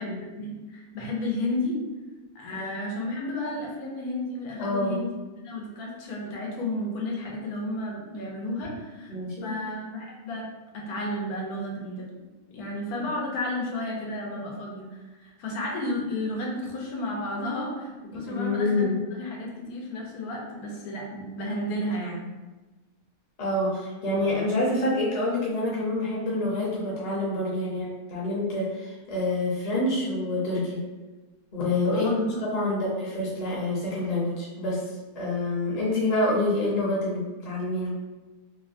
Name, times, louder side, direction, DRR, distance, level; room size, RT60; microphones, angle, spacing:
voice 1, 0.4-1.8 2.3-5.1 5.4-9.2 9.4-10.5 10.7-12.1 12.5-22.3 31.9-32.8, left 1 dB, 90° left, -2 dB, 1.1 m, -32 dB
voice 2, 4.6-5.0 9.1-9.5 18.3-19.0 23.4-30.8 31.5-32.1 32.5-34.8 35.2-37.9, left 2 dB, 35° left, -6 dB, 0.6 m, -27 dB
3.0 x 2.1 x 2.5 m, 1.2 s
omnidirectional pair, 1.6 m